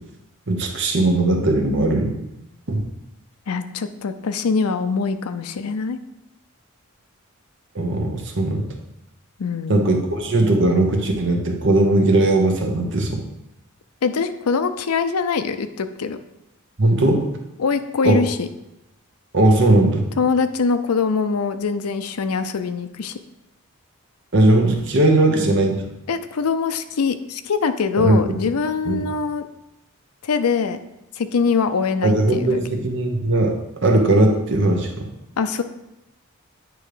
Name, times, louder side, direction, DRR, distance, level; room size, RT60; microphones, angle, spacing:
voice 1, 0.5-2.1 2.7-2.9 7.7-8.7 9.7-13.2 16.8-17.2 18.0-18.2 19.3-20.0 24.3-25.8 28.0-28.3 28.9-29.0 32.0-35.1, right 2 dB, 55° right, 2 dB, 1.0 m, -18 dB
voice 2, 3.5-6.0 9.4-9.9 14.0-16.2 17.6-18.5 20.2-23.2 26.1-29.5 30.2-30.8 31.2-32.6 35.4-35.6, left 5 dB, 85° left, 10 dB, 0.5 m, -23 dB
9.2 x 3.2 x 5.0 m, 0.90 s
head